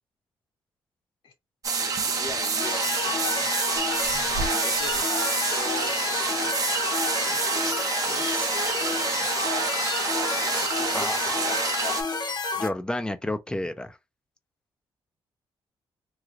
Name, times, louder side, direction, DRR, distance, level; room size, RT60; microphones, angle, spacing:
sound 1, 1.6-12.0, right 4 dB, 40° right, 0.7 m, -27 dB
voice 1, 1.8-3.5 4.3-6.5 7.0-8.2 8.5-9.3 10.3-11.1 11.4-12.0, left 4 dB, 65° left, 1.5 m, -41 dB
sound 2, 1.9-3.0 3.6-5.0, right 3 dB, 80° right, 0.4 m, -37 dB
sound 3, 2.6-12.7, left 4 dB, 50° left, 0.9 m, -30 dB
voice 2, 10.9-11.4 12.6-14.0, left 1 dB, 10° left, 0.5 m, -31 dB
3.2 x 2.6 x 2.5 m
cardioid pair, 105°, 9 cm